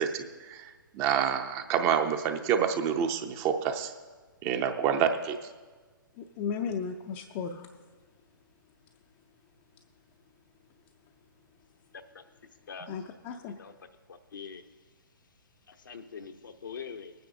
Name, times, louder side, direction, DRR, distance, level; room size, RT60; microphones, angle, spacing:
voice 1, 0.0-3.9 4.4-5.4, right 8 dB, 25° right, 7 dB, 0.6 m, -28 dB
voice 2, 6.2-7.7 12.9-13.6, left 6 dB, 25° left, 3 dB, 0.5 m, -35 dB
voice 3, 14.1-14.6 15.7-17.1, left 6 dB, 65° left, 7 dB, 0.8 m, -43 dB
21.0 x 9.3 x 2.7 m, 1.4 s
figure-of-eight pair, 125°, 12 cm